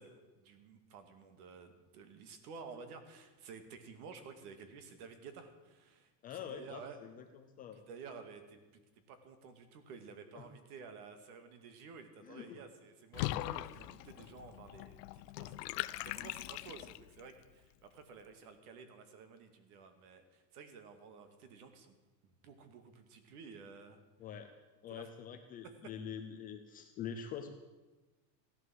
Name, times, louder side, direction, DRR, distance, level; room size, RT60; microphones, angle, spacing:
voice 1, 0.0-7.0 7.7-8.8 9.1-22.0 22.2-24.0 24.9-25.1, right 5 dB, 60° right, 9 dB, 2.3 m, -53 dB
voice 2, 6.2-7.8 10.3-10.5 12.2-12.6 24.2-24.5 24.8-27.5, left 8 dB, 20° left, 5 dB, 0.5 m, -45 dB
Water / Bathtub (filling or washing), 13.1-17.2, left 16 dB, 70° left, 0.7 m, -41 dB
16.0 x 11.0 x 7.8 m, 1.2 s
supercardioid pair, 170°, 50 cm